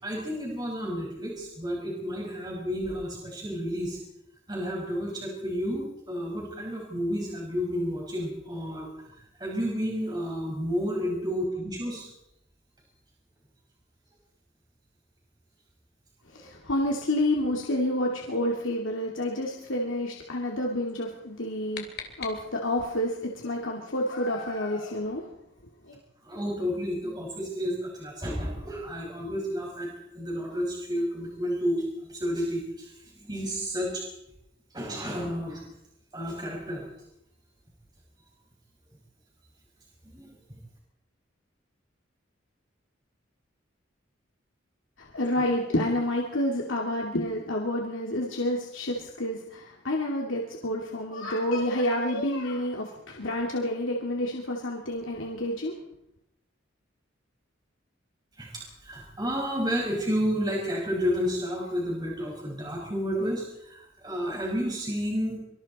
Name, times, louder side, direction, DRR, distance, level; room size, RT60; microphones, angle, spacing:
voice 1, 0.0-4.0 4.5-8.9 9.4-12.1 26.2-29.9 30.1-34.0 34.7-35.6 36.1-36.9 40.1-40.3 45.3-45.4 58.4-65.4, equal, 20° right, -2 dB, 5.5 m, -31 dB
voice 2, 16.3-21.9 22.2-25.2 25.9-26.0 45.0-55.7, left 1 dB, 80° left, 0 dB, 2.6 m, -29 dB
sound 1, 21.2-22.9, left 7 dB, 55° left, 3.0 m, -43 dB
25.5 x 24.0 x 4.3 m, 0.83 s
head